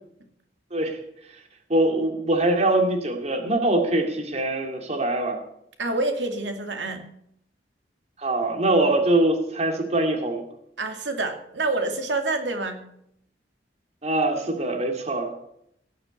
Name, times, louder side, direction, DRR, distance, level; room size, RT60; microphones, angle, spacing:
voice 1, 1.7-5.4 8.2-10.4 14.0-15.3, right 2 dB, 35° right, 4 dB, 2.3 m, -23 dB
voice 2, 5.8-7.1 10.8-12.8, right 2 dB, 85° right, 5 dB, 2.5 m, -27 dB
17.5 x 6.5 x 8.4 m, 0.73 s
head